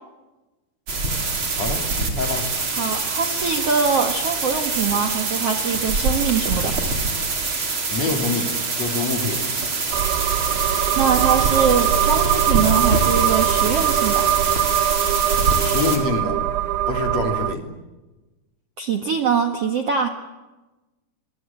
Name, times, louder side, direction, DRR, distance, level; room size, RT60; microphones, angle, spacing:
sound 1, 0.9-16.0, right 3 dB, 30° right, 3.9 m, -24 dB
voice 1, 1.6-2.5 7.9-9.4 15.6-16.4 16.9-17.6, left 3 dB, 40° left, 4 dB, 4.1 m, -26 dB
voice 2, 2.7-6.8 11.0-14.3 18.8-20.1, right 6 dB, 50° right, 5 dB, 1.9 m, -23 dB
sound 2, 9.9-17.5, right 12 dB, 80° right, 3.1 m, -21 dB
26.0 x 23.0 x 8.9 m, 1.1 s
omnidirectional pair, 4.7 m